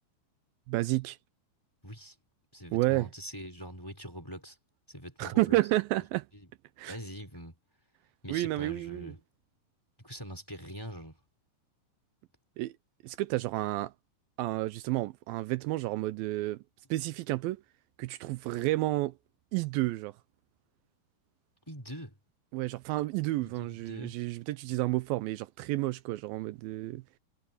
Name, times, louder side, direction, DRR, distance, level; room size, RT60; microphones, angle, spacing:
voice 1, 0.7-1.2 2.7-3.1 5.2-6.3 6.8-7.0 8.3-9.1 12.6-12.7 13.0-13.9 14.4-16.6 16.9-17.6 18.0-19.1 19.5-20.2 22.5-27.0, right 18 dB, 80° right, 2.4 m, -31 dB
voice 2, 1.8-2.1 2.5-4.6 4.9-5.6 6.9-7.6 8.2-9.2 10.0-11.2 21.7-22.1 23.4-24.2, equal, 5° left, 4.2 m, -43 dB
omnidirectional pair, 4.2 m